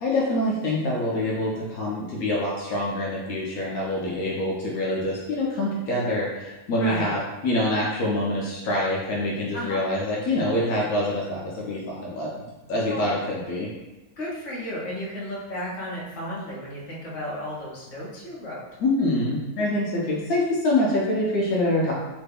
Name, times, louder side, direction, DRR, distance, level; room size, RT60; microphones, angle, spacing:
voice 1, 0.0-13.7 18.8-21.9, left 1 dB, 80° left, -4 dB, 1.1 m, -25 dB
voice 2, 6.8-7.1 9.5-9.8 12.9-13.0 14.2-18.6, left 1 dB, 55° left, -6 dB, 1.2 m, -33 dB
3.2 x 2.2 x 3.4 m, 1.1 s
omnidirectional pair, 1.5 m